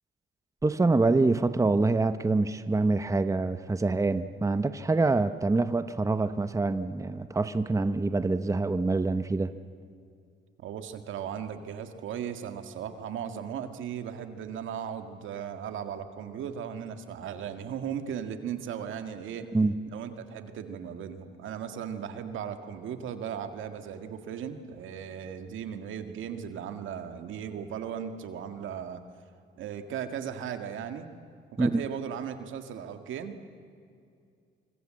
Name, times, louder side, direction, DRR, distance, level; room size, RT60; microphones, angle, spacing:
voice 1, 0.6-9.5 19.5-19.8 31.6-31.8, right 3 dB, 15° right, 11 dB, 0.9 m, -25 dB
voice 2, 10.6-19.5 19.9-29.0 29.6-31.1 31.5-33.4, right 8 dB, 80° right, 7 dB, 2.0 m, -37 dB
25.0 x 25.0 x 7.6 m, 2.3 s
cardioid pair, 90°, 20 cm